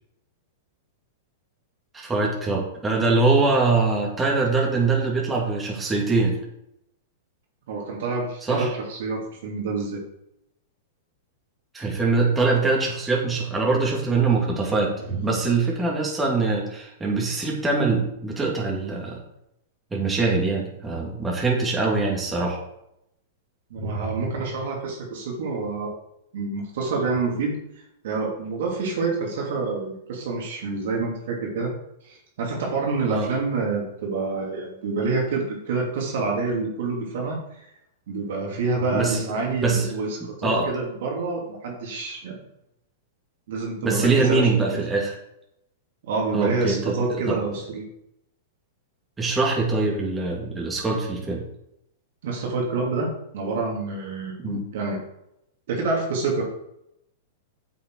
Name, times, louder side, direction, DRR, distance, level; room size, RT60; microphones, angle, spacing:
voice 1, 1.9-6.4 8.4-8.7 11.7-14.9 15.2-19.2 19.9-22.6 33.1-33.3 38.9-39.2 39.5-39.9 40.4-40.7 43.8-45.1 46.3-47.4 49.2-51.4 54.4-54.6, right 3 dB, 15° right, -3 dB, 2.8 m, -23 dB
voice 2, 7.7-10.0 15.0-15.2 23.7-25.9 26.3-27.6 28.0-31.7 32.0-37.7 38.1-42.4 43.5-44.8 46.1-47.8 52.2-55.0 55.7-56.4, right 3 dB, 65° right, -1 dB, 2.8 m, -27 dB
7.9 x 7.1 x 4.8 m, 0.81 s
hypercardioid pair, 115°, 0 cm